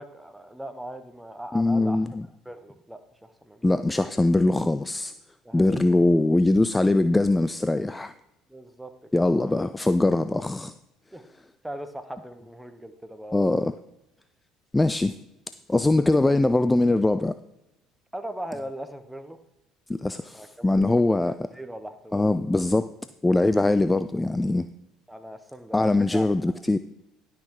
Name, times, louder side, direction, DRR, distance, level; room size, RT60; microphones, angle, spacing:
voice 1, 0.0-2.0 2.4-3.6 5.4-5.7 8.5-9.7 11.1-11.2 11.6-13.7 18.1-19.4 20.3-22.4 25.1-26.2, right 1 dB, 5° right, 9 dB, 1.1 m, -39 dB
voice 2, 1.5-2.2 3.6-5.1 5.5-8.1 9.1-10.7 13.3-13.7 14.7-15.2 15.7-17.3 19.9-21.3 22.1-22.9 23.2-24.7 25.7-26.8, left 2 dB, 15° left, 13 dB, 0.4 m, -22 dB
11.5 x 5.9 x 4.8 m, 0.87 s
hypercardioid pair, 65°, 0 cm